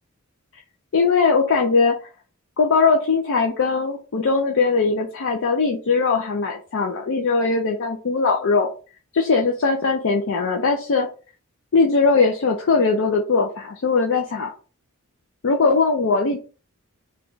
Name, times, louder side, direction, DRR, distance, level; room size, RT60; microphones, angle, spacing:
voice 1, 0.9-2.0 2.6-8.7 9.1-11.1 11.7-14.5 15.4-16.4, left 4 dB, 65° left, 2 dB, 0.5 m, -20 dB
3.2 x 2.3 x 3.9 m, 0.36 s
head